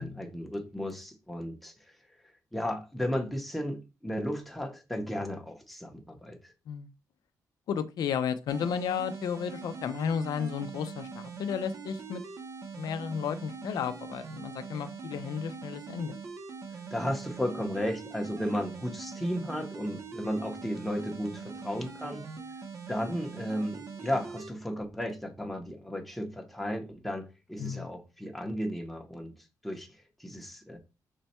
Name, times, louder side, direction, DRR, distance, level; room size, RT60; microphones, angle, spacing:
voice 1, 0.0-2.0 2.5-6.5 16.7-22.2 22.9-29.3 29.6-30.8, equal, ahead, 0.7 m, -34 dB
voice 2, 7.7-12.2 12.8-16.2 27.6-27.9, left 7 dB, 75° left, 0.4 m, -33 dB
sound 1, 8.5-24.5, right 5 dB, 50° right, 0.8 m, -42 dB
5.2 x 2.2 x 4.1 m
wide cardioid pair, 160°, 7 cm